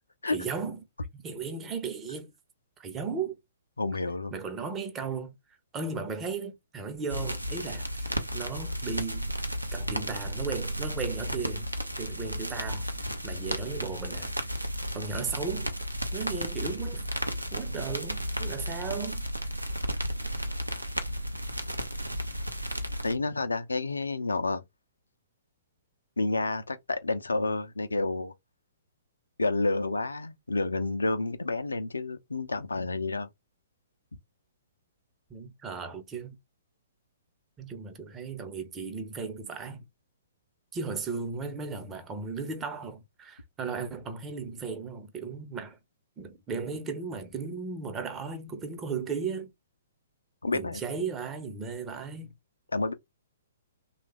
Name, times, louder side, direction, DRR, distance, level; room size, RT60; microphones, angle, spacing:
voice 1, 0.3-0.8 1.2-2.3 2.8-3.4 4.3-5.3 5.7-9.3 9.7-11.7 12.0-14.3 14.9-15.7 16.1-17.1 17.5-19.2 35.3-36.4 37.6-39.8 40.7-45.8 46.2-49.5 50.5-52.3, right 5 dB, 15° right, 0.7 m, -36 dB
voice 2, 3.8-4.3 23.0-24.6 26.2-28.3 29.4-33.3 50.4-50.8 52.7-52.9, left 3 dB, 75° left, 0.5 m, -29 dB
sound 1, 7.1-23.2, equal, 85° right, 0.6 m, -33 dB
3.2 x 2.4 x 3.1 m
figure-of-eight pair, 120°, 0 cm